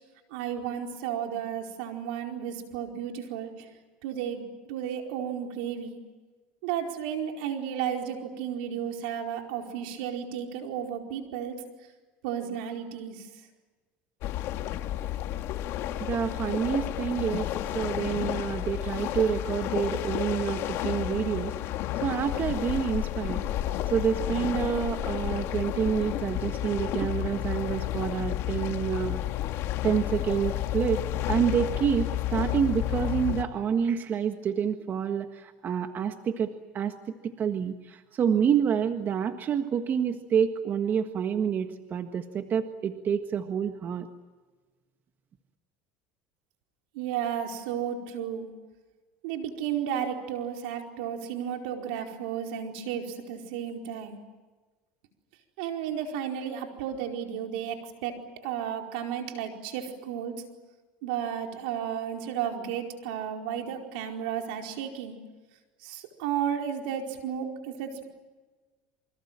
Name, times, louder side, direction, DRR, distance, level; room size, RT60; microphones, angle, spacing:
voice 1, 0.3-3.7 4.0-6.0 6.6-11.6 12.2-13.3 46.9-48.5 49.2-54.2 55.6-60.4 61.0-65.2 65.8-68.1, right 9 dB, 80° right, 3 dB, 4.7 m, -33 dB
sound 1, 14.2-33.4, left 13 dB, 60° left, 1.9 m, -31 dB
voice 2, 16.0-17.5 17.7-21.5 22.0-23.4 23.9-29.2 29.8-31.0 31.3-36.9 37.2-44.1, right 7 dB, 40° right, 7 dB, 1.7 m, -28 dB
28.0 x 25.0 x 7.6 m, 1.3 s
supercardioid pair, 110°, 5 cm